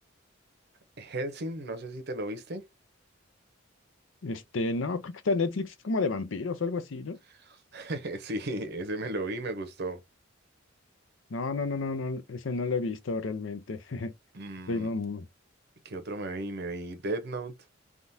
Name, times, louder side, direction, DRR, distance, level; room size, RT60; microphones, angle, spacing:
voice 1, 1.0-2.6 7.4-10.0 14.3-14.9 15.8-17.5, right 1 dB, 55° right, 0.8 m, -35 dB
voice 2, 4.2-7.2 11.3-14.1 14.7-15.3, left 3 dB, 70° left, 0.6 m, -31 dB
3.6 x 2.4 x 2.7 m
head